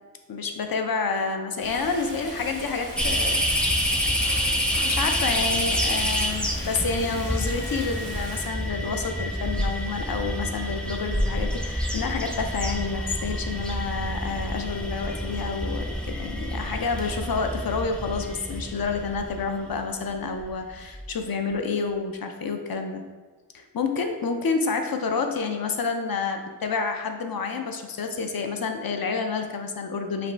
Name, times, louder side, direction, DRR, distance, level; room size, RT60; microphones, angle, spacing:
voice 1, 0.3-3.4 4.8-23.0 23.5-30.3, left 4 dB, 70° left, 5 dB, 0.5 m, -29 dB
Stream, 1.6-8.5, equal, 40° left, 1.4 m, -39 dB
sound 1, 3.0-19.8 20.4-20.5 20.9-21.1, equal, 5° left, 0.4 m, -28 dB
5.2 x 2.6 x 3.3 m, 1.3 s
wide cardioid pair, 70°, 36 cm